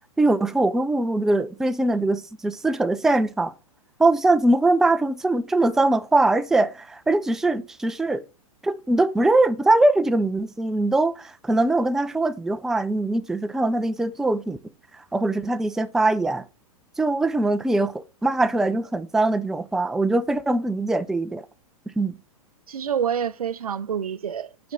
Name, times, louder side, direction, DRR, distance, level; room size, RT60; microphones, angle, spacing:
voice 1, 0.2-3.5 4.0-8.2 8.6-14.6 14.9-16.5 17.0-21.5 22.0-22.2, right 2 dB, ahead, 0.3 m, -22 dB
voice 2, 22.7-24.7, right 8 dB, 85° right, 0.4 m, -27 dB
7.0 x 4.3 x 3.8 m
figure-of-eight pair, 105°, 18 cm